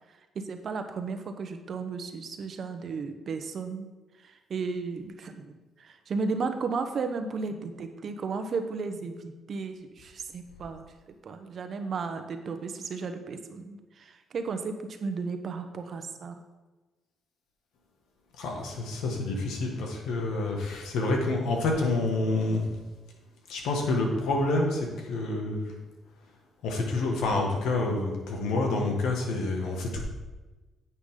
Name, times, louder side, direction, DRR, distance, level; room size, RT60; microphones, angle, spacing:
voice 1, 0.3-3.9 4.2-10.8 11.2-16.4, right 4 dB, 55° right, 7 dB, 1.0 m, -34 dB
voice 2, 18.4-22.7 23.5-25.7 26.6-30.0, left 2 dB, 85° left, 1 dB, 2.0 m, -28 dB
9.7 x 8.1 x 3.9 m, 1.2 s
cardioid pair, 90°, 0 cm